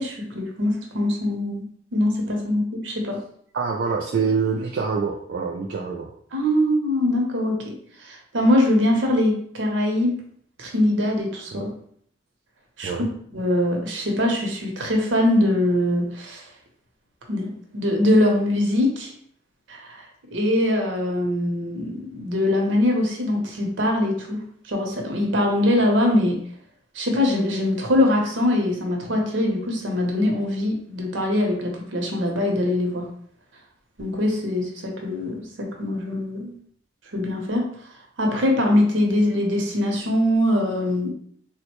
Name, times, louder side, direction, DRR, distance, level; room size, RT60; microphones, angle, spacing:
voice 1, 0.0-1.6 1.9-3.2 6.3-7.7 8.0-10.1 10.6-11.7 12.8-13.0 13.3-16.4 17.3-19.1 19.7-20.1 20.3-24.4 24.7-26.4 26.9-33.1 34.0-36.5 37.1-37.6 38.2-41.1, left 1 dB, 80° right, 1 dB, 0.7 m, -22 dB
voice 2, 3.5-6.1 11.5-11.7 12.8-13.1, right 5 dB, 60° right, -1 dB, 0.3 m, -25 dB
3.6 x 2.1 x 2.9 m, 0.62 s
head